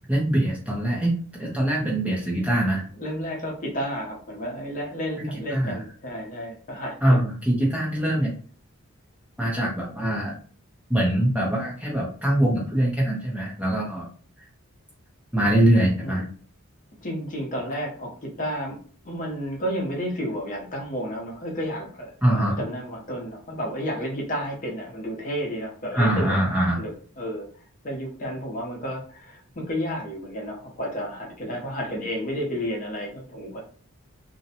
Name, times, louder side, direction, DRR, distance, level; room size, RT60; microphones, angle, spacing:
voice 1, 0.1-2.8 5.2-5.8 7.0-8.3 9.4-10.3 10.9-14.1 15.3-16.2 22.2-22.6 25.9-26.8, right 1 dB, 5° right, -4 dB, 0.5 m, -23 dB
voice 2, 2.9-7.3 16.0-16.3 17.0-18.8 19.0-26.4 26.8-26.9 27.2-27.5 27.8-33.6, equal, 35° left, -1 dB, 0.7 m, -31 dB
2.6 x 2.1 x 2.7 m, 0.43 s
head